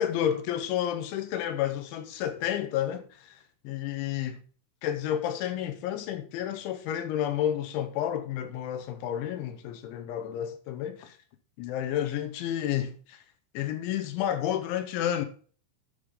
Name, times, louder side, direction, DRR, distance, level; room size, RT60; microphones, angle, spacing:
voice 1, 0.0-4.4 4.8-11.2 11.6-13.2 13.5-15.3, left 10 dB, 85° left, 2.9 m, -31 dB
10.5 x 5.2 x 5.2 m
omnidirectional pair, 5.8 m